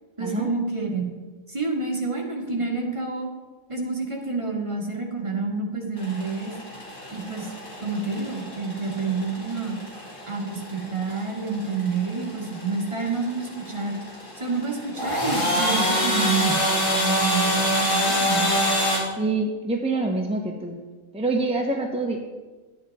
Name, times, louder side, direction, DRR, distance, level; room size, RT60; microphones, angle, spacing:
voice 1, 0.2-1.1 1.5-3.3 3.7-6.5 7.1-7.5 7.8-9.8 10.3-14.0 14.4-16.6 16.9-18.5, right 4 dB, 20° right, -1 dB, 1.8 m, -28 dB
sound 1, 6.0-19.0, equal, 75° left, 3.2 m, -26 dB
voice 2, 19.2-20.8 21.1-22.2, right 2 dB, 5° right, 1 dB, 0.6 m, -26 dB
12.5 x 9.0 x 4.2 m, 1.3 s
omnidirectional pair, 1.5 m